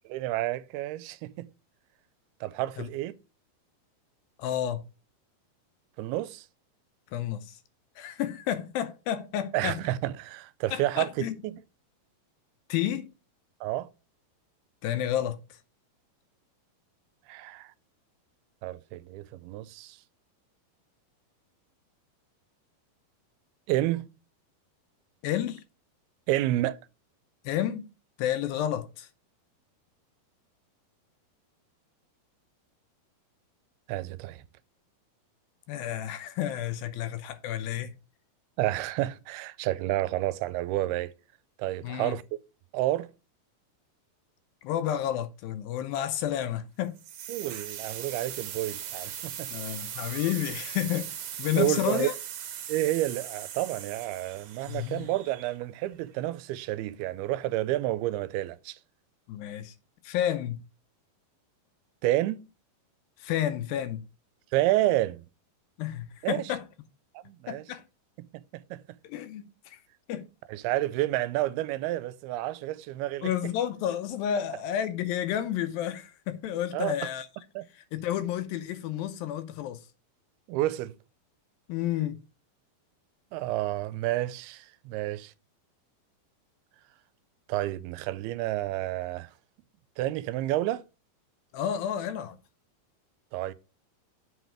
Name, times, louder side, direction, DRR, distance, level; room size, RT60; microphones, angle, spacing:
voice 1, 0.1-1.5 2.4-3.1 6.0-6.5 9.5-11.6 13.6-13.9 17.3-17.7 18.6-20.0 23.7-24.1 26.3-26.8 33.9-34.4 38.6-41.1 41.6-42.2 42.7-43.1 47.3-49.5 51.6-52.1 52.7-58.8 62.0-62.5 64.5-65.2 66.2-66.4 67.1-67.6 68.2-68.3 68.5-68.8 70.5-73.3 76.7-76.9 77.6-77.7 80.5-80.9 83.3-85.3 87.5-89.3 90.0-90.8 93.3-93.5, right 15 dB, 85° right, 2.5 m, -30 dB
voice 2, 4.4-4.8 7.1-7.6 8.0-9.8 10.7-11.3 12.7-13.1 14.8-15.4 25.2-25.6 27.4-27.9 28.2-29.1 35.7-37.9 41.8-42.2 44.6-47.0 49.5-51.1 51.4-52.1 54.7-55.1 59.3-59.7 60.0-60.6 63.2-64.0 65.8-66.6 67.5-67.8 69.0-69.8 70.1-70.3 73.2-77.3 77.9-79.8 81.7-82.2 91.5-92.4, left 11 dB, 80° left, 2.3 m, -31 dB
sound 1, 47.0-55.8, right 9 dB, 65° right, 2.0 m, -39 dB
8.0 x 4.0 x 6.0 m
omnidirectional pair, 4.5 m